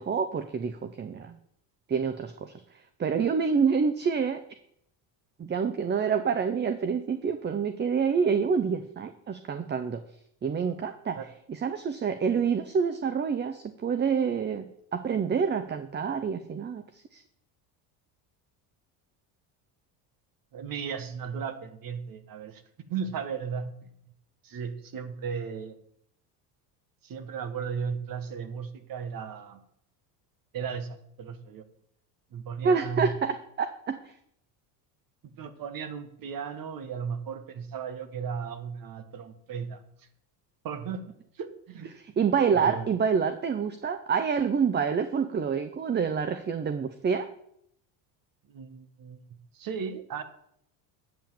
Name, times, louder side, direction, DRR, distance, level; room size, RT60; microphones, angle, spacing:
voice 1, 0.0-1.4 1.9-4.4 5.4-10.0 10.4-11.2 11.5-17.2 32.6-34.1 42.2-47.3, right 6 dB, 25° right, 9 dB, 0.6 m, -27 dB
voice 2, 20.5-22.6 22.9-23.9 24.4-25.7 27.0-29.6 30.5-31.6 32.3-33.1 35.3-39.8 40.6-41.1 41.3-41.9 42.5-42.9 48.5-50.2, right 6 dB, 45° right, 10 dB, 1.4 m, -36 dB
8.9 x 5.6 x 7.3 m, 0.71 s
supercardioid pair, 100°, 47 cm